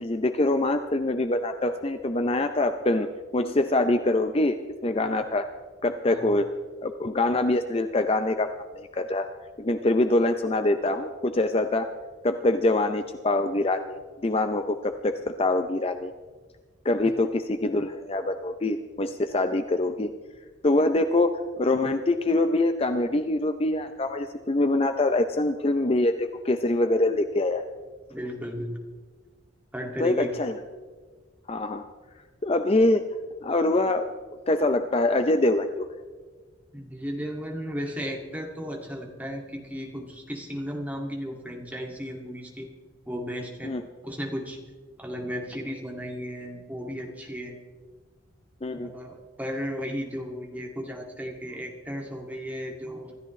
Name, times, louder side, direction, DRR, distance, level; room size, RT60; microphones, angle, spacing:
voice 1, 0.0-3.1 3.3-4.6 4.8-5.5 5.8-6.5 6.8-8.5 8.8-9.3 9.6-11.9 12.2-14.0 14.2-16.1 16.8-20.1 20.6-27.6 30.0-30.5 31.5-31.8 32.4-33.0 33.4-34.1 34.5-35.9 43.6-43.8 48.6-48.9, left 2 dB, 30° left, 8 dB, 0.5 m, -24 dB
voice 2, 28.1-28.8 29.7-30.5 36.7-42.7 43.1-43.7 44.0-44.6 45.0-47.6 48.7-53.2, equal, 10° right, 0 dB, 2.2 m, -35 dB
26.0 x 13.5 x 3.2 m, 1.5 s
head